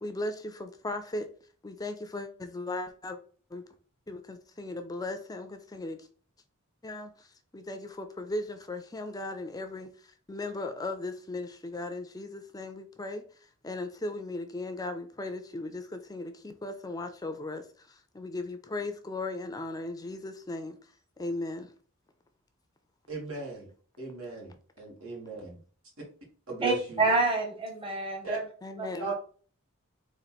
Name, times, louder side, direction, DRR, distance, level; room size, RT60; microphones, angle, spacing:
voice 1, 0.0-1.3 1.6-3.2 3.5-3.6 4.1-6.1 6.8-7.3 7.5-9.9 10.3-13.2 13.6-20.8 21.2-21.7 28.6-29.1, left 2 dB, 20° left, 7 dB, 0.4 m, -37 dB
voice 2, 23.1-23.7 24.0-25.6 26.0-26.1 26.5-27.0 28.2-28.4 29.0-29.1, right 3 dB, 85° right, -3 dB, 2.3 m, -37 dB
voice 3, 26.6-28.4 28.8-29.1, right 3 dB, 25° right, 0 dB, 1.0 m, -28 dB
4.3 x 2.9 x 4.1 m, 0.43 s
head